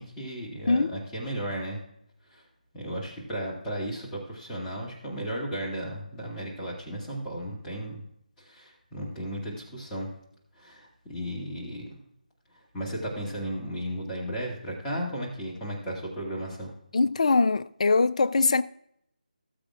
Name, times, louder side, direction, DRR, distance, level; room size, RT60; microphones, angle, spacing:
voice 1, 0.0-1.8 2.3-2.4 2.7-8.0 8.4-10.1 10.5-12.0 12.7-16.7, right 1 dB, 10° left, 2.2 m, -35 dB
voice 2, 16.9-18.6, left 3 dB, 50° left, 0.4 m, -22 dB
18.5 x 7.7 x 2.4 m
figure-of-eight pair, 155°, 5 cm